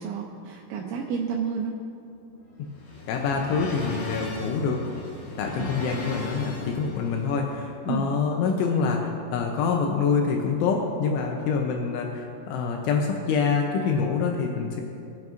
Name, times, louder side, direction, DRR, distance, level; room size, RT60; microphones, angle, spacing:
voice 1, 0.0-1.7 5.6-5.7 7.9-8.1, right 6 dB, 80° right, -1 dB, 3.1 m, -30 dB
sound 1, 2.2-7.3, left 1 dB, 60° left, 2.7 m, -37 dB
voice 2, 3.1-4.9 5.4-14.8, left 5 dB, 85° left, 1 dB, 3.2 m, -26 dB
23.5 x 9.0 x 2.6 m, 2.6 s
omnidirectional pair, 5.5 m